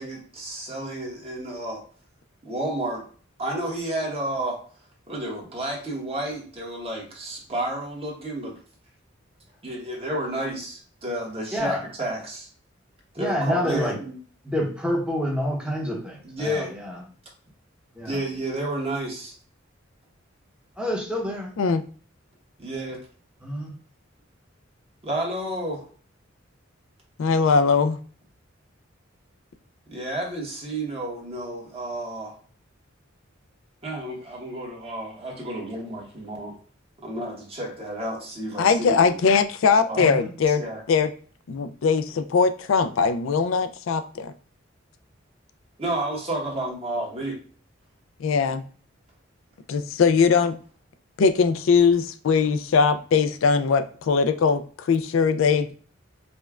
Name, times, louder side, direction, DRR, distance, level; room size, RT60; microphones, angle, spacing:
voice 1, 0.0-1.8 2.4-3.0 3.4-4.6 5.1-8.6 9.6-12.5 13.1-14.1 16.2-16.7 18.0-19.3 22.6-23.0 25.0-25.9 29.9-32.4 33.8-36.5 37.0-39.1 39.8-40.1 40.5-40.8 45.8-47.4, right 1 dB, 30° right, -2 dB, 1.1 m, -31 dB
voice 2, 11.5-11.8 13.2-14.0 14.4-17.0 17.9-18.2 20.8-21.6 23.4-23.7 40.0-40.3, equal, 5° right, -1 dB, 0.8 m, -28 dB
voice 3, 27.2-28.0 38.6-40.6 40.9-41.1 41.5-44.3 48.2-48.6 49.7-50.5 51.2-55.7, left 5 dB, 85° left, 9 dB, 0.4 m, -21 dB
5.1 x 2.2 x 2.4 m, 0.43 s
head